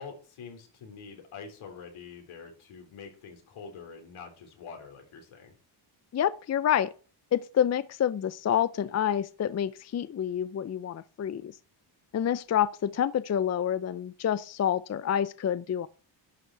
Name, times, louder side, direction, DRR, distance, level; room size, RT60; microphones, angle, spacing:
voice 1, 0.0-5.5, left 5 dB, 85° left, 3.7 m, -45 dB
voice 2, 6.1-6.9 7.3-11.5 12.1-15.9, left 9 dB, 35° left, 0.5 m, -28 dB
11.0 x 6.5 x 4.5 m
cardioid pair, 85°, 47 cm